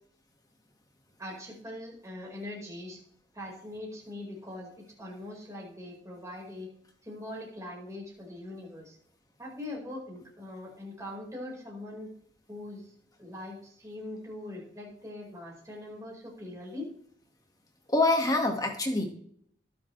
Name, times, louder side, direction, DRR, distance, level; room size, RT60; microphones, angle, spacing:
voice 1, 1.2-3.0 3.3-6.7 7.0-9.0 9.4-12.1 12.5-12.9 13.2-16.9, left 1 dB, 20° right, -3 dB, 5.0 m, -42 dB
voice 2, 17.9-19.0, left 2 dB, 20° left, 3 dB, 2.0 m, -25 dB
21.5 x 7.3 x 3.4 m, 0.64 s
head